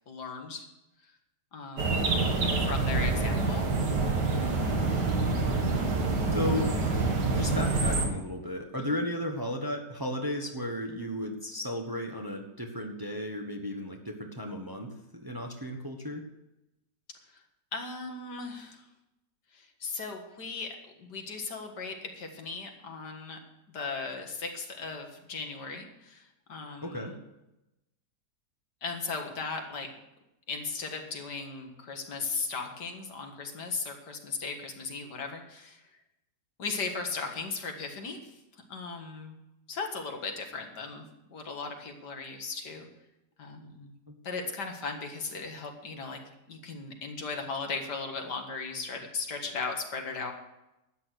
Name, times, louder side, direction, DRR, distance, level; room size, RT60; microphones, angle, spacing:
voice 1, 0.1-0.7 1.5-2.1 2.6-3.6 8.8-9.0 17.7-18.8 19.5-23.4 23.7-27.2 28.8-29.9 30.5-35.8 36.6-38.4 38.7-39.3 39.7-42.9 43.4-43.9 44.2-46.2 46.5-50.3, left 4 dB, 85° left, 3 dB, 2.3 m, -37 dB
sound 1, 1.8-8.1, right 3 dB, 85° right, 2.4 m, -27 dB
voice 2, 6.3-6.7 7.2-16.2 26.8-27.1 44.1-44.2, left 1 dB, 15° right, 3 dB, 1.2 m, -34 dB
12.5 x 8.8 x 6.4 m, 0.92 s
omnidirectional pair, 1.8 m